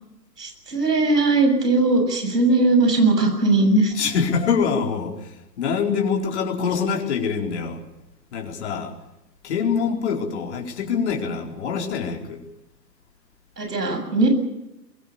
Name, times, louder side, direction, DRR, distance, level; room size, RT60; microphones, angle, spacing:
voice 1, 0.4-3.9 13.6-14.3, right 2 dB, 70° right, 5 dB, 7.5 m, -19 dB
voice 2, 3.9-5.2 5.6-7.8 8.3-8.9 9.4-12.4, left 6 dB, 40° left, 2 dB, 4.5 m, -24 dB
23.5 x 22.5 x 7.0 m, 0.91 s
figure-of-eight pair, 125°, 50 cm